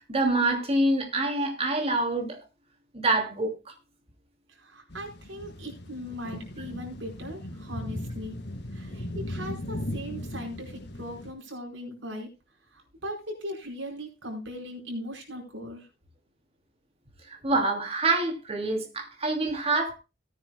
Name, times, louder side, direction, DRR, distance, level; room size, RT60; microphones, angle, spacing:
voice 1, 0.0-2.4 2.9-3.7 17.3-19.9, right 2 dB, 35° right, 2.9 m, -26 dB
voice 2, 4.6-8.4 8.7-12.3 12.7-15.9, equal, 80° right, 4.8 m, -39 dB
sound 1, 4.9-11.3, left 1 dB, 60° left, 2.0 m, -37 dB
18.0 x 9.5 x 2.3 m
head